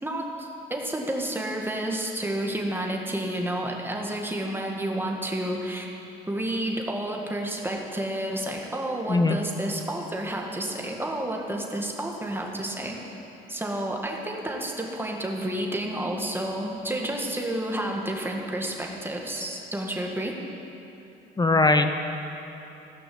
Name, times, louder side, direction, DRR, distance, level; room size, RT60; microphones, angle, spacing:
voice 1, 0.0-5.9 6.3-13.0 13.5-20.4, right 1 dB, 10° right, 0 dB, 1.9 m, -30 dB
voice 2, 21.4-21.9, left 2 dB, 20° left, 7 dB, 0.7 m, -20 dB
15.5 x 6.0 x 7.9 m, 3.0 s
supercardioid pair, 80°, 21 cm